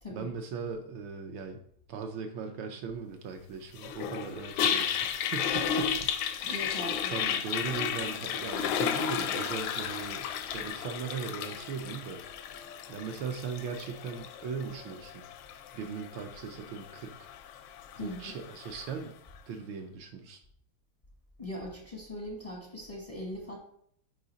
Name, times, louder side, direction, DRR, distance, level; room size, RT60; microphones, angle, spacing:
voice 1, 0.1-1.6 1.9-6.0 6.4-6.8 7.1-10.3 10.5-12.2 12.9-15.2 15.7-17.3 18.0-19.1 19.5-20.4, right 6 dB, 75° right, 5 dB, 1.3 m, -39 dB
Toilet flush, 3.8-19.0, left 8 dB, 80° left, 1.4 m, -34 dB
voice 2, 6.5-7.1 17.9-18.3 21.4-23.6, left 1 dB, 40° left, -2 dB, 0.5 m, -40 dB
4.9 x 4.8 x 3.9 m, 0.66 s
omnidirectional pair, 2.4 m